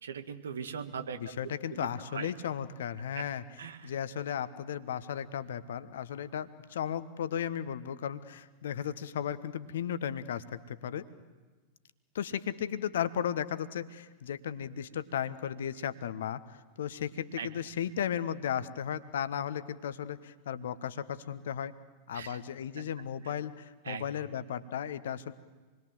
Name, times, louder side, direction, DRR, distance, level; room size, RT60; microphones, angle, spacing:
voice 1, 0.0-1.2 1.7-2.3 3.1-3.2 3.6-3.9 17.4-17.5 22.1-22.4 23.2-23.3 23.8-24.0, right 6 dB, 65° right, 9 dB, 1.7 m, -40 dB
voice 2, 1.1-3.4 3.8-11.0 12.1-21.7 22.1-25.3, left 9 dB, 60° left, 13 dB, 1.2 m, -35 dB
27.0 x 21.5 x 7.8 m, 1.3 s
figure-of-eight pair, 90°, 0 cm